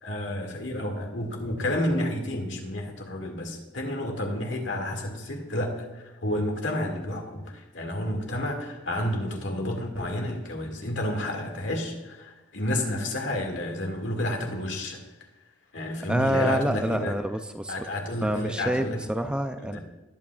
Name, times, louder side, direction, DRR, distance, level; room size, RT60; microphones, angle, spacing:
voice 1, 0.0-15.0 15.7-17.2 17.7-19.0 19.6-19.8, left 1 dB, 70° left, 2 dB, 2.1 m, -30 dB
voice 2, 16.1-17.8 18.2-19.8, equal, 5° right, 7 dB, 0.4 m, -27 dB
20.0 x 8.5 x 2.4 m, 1.1 s
head